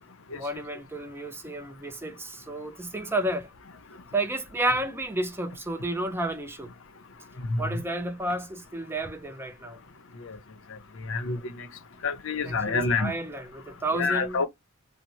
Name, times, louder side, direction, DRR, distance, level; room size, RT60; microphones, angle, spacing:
voice 1, 0.3-3.5 4.1-6.7 7.6-9.8 12.4-14.4, right 1 dB, 10° right, 0.5 m, -31 dB
voice 2, 7.4-7.8 10.2-10.4 11.0-11.7 12.0-13.1 13.9-14.5, left 4 dB, 65° left, 0.6 m, -28 dB
2.7 x 2.1 x 3.0 m
head